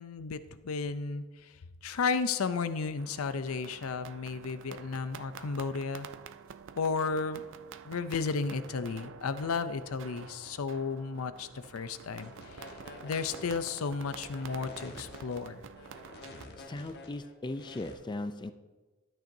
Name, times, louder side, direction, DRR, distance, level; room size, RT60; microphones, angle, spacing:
voice 1, 0.0-1.5 1.8-6.1 6.8-7.4 7.8-12.7 13.0-15.6, left 4 dB, 75° left, 12 dB, 0.5 m, -33 dB
sound 1, 3.0-16.5, right 7 dB, 60° right, 0.4 m, -49 dB
sound 2, 12.2-17.9, left 2 dB, 55° left, 1.2 m, -49 dB
voice 2, 16.6-18.5, left 2 dB, 20° left, 10 dB, 0.4 m, -38 dB
13.0 x 8.9 x 2.7 m, 1.2 s
head